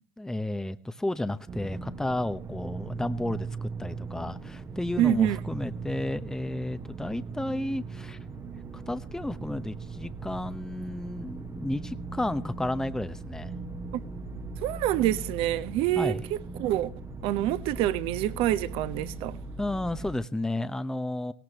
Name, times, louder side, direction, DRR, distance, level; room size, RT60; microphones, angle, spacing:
voice 1, 0.2-8.2 8.7-13.5 16.0-16.2 19.6-21.3, left 1 dB, 5° left, 0.9 m, -32 dB
sound 1, 1.5-20.2, right 3 dB, 25° right, 1.2 m, -39 dB
voice 2, 5.0-5.4 13.9-14.0 14.6-16.1 16.6-16.9 17.2-19.4, right 13 dB, 55° right, 1.2 m, -26 dB
18.0 x 17.5 x 3.0 m
hypercardioid pair, 80°, 11 cm